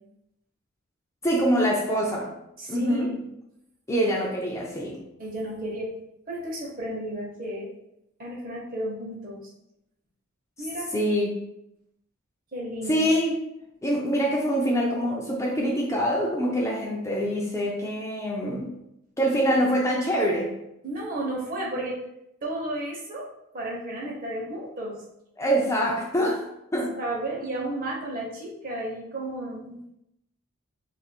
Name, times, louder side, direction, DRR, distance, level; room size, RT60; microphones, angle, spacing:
voice 1, 1.2-2.3 2.7-3.2 3.9-5.0 10.9-11.3 12.9-13.4 13.8-18.8 19.2-20.5 25.4-26.5 26.7-27.0, equal, 15° left, -2 dB, 0.4 m, -25 dB
voice 2, 2.6-3.2 5.2-5.9 6.3-7.7 8.2-9.5 10.6-10.9 12.5-13.1 20.8-22.0 22.4-23.3 23.5-25.0 27.0-29.9, right 1 dB, 40° right, -3 dB, 0.9 m, -33 dB
2.6 x 2.5 x 4.2 m, 0.83 s
head